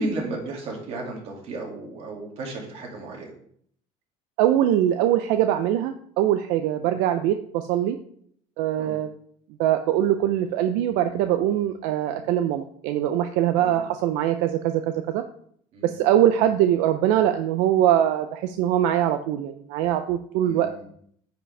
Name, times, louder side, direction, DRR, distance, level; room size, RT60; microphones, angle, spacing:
voice 1, 0.0-3.3 8.8-9.0 12.1-12.2 13.6-13.9 15.7-15.9 20.4-20.9, right 2 dB, 50° right, -1 dB, 2.3 m, -33 dB
voice 2, 4.4-8.0 8.6-9.1 9.6-15.2 15.8-20.7, right 11 dB, 80° right, 8 dB, 0.5 m, -22 dB
9.6 x 5.1 x 3.3 m, 0.64 s
cardioid pair, 135°, 13 cm